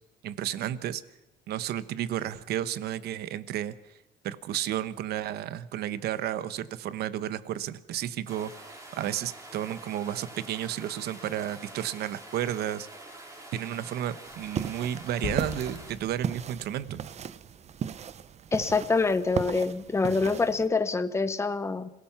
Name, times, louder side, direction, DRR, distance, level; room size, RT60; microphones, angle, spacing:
voice 1, 0.2-1.0 1.5-3.9 4.2-8.5 9.0-12.9 13.5-17.0, right 11 dB, 70° right, 14 dB, 1.1 m, -32 dB
sound 1, 8.3-15.9, right 1 dB, 20° right, 4.6 m, -46 dB
sound 2, 14.3-20.7, right 8 dB, 40° right, 0.7 m, -37 dB
sound 3, 15.2-17.1, left 8 dB, 55° left, 1.6 m, -39 dB
voice 2, 18.5-21.9, left 4 dB, 15° left, 11 dB, 1.0 m, -26 dB
26.5 x 17.0 x 5.9 m, 0.97 s
cardioid pair, 110°, 17 cm